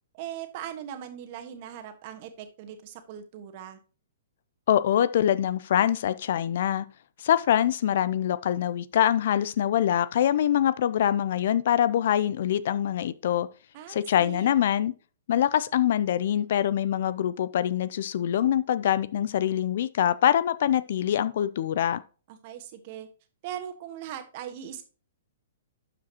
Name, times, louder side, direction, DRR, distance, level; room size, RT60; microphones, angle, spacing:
voice 1, 0.1-3.8 13.7-14.5 22.3-23.1 23.4-24.8, right 10 dB, 45° right, 1.4 m, -40 dB
voice 2, 4.7-6.8 7.2-13.5 13.9-14.9 15.3-22.0, left 10 dB, 60° left, 0.4 m, -24 dB
12.0 x 5.0 x 2.9 m
hypercardioid pair, 120°, 0 cm